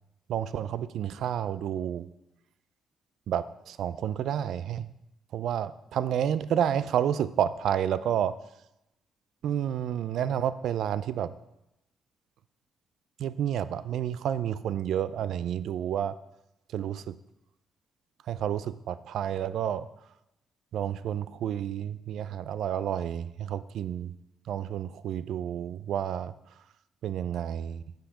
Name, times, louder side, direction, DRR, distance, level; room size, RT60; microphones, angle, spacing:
voice 1, 0.3-2.1 3.3-4.9 5.3-8.3 9.4-11.3 13.2-16.1 16.7-17.2 18.3-19.9 20.7-24.1 24.5-26.3 27.0-27.8, right 9 dB, 75° right, 15 dB, 0.4 m, -30 dB
8.7 x 5.9 x 4.9 m, 0.89 s
cardioid pair, 90°, 0 cm